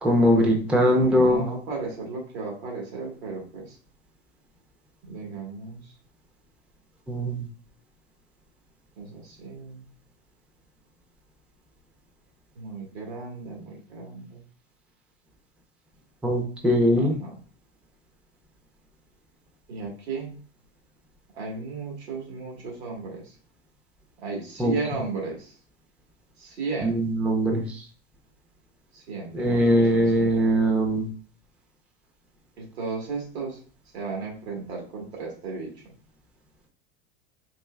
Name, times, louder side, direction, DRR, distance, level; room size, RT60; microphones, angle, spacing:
voice 1, 0.0-1.4 7.1-7.5 16.2-17.2 24.6-24.7 26.8-27.6 29.3-31.0, equal, 5° right, 1 dB, 0.4 m, -21 dB
voice 2, 1.0-3.7 5.0-5.8 9.0-9.9 12.5-14.4 17.0-17.3 19.7-20.4 21.4-23.2 24.2-25.5 26.4-27.0 28.9-30.4 32.6-33.6 33.9-35.7, right 4 dB, 90° right, -1 dB, 1.6 m, -35 dB
4.2 x 2.9 x 2.3 m, 0.42 s
supercardioid pair, 130°, 31 cm